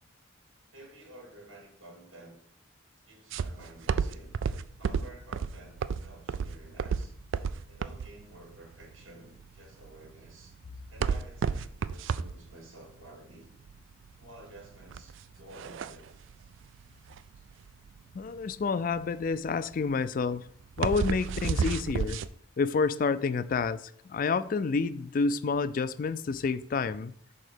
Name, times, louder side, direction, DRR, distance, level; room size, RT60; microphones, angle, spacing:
voice 1, 0.7-2.4 3.0-4.3 4.8-7.1 7.7-10.5 10.9-13.5 14.2-16.2 17.4-17.5, right 1 dB, 90° right, 1 dB, 2.2 m, -52 dB
sound 1, 3.3-22.3, right 6 dB, 75° right, 0.3 m, -33 dB
voice 2, 18.1-20.5 20.8-22.2 22.6-27.1, left 4 dB, 45° left, 15 dB, 0.3 m, -29 dB
6.3 x 3.8 x 5.0 m, 0.64 s
head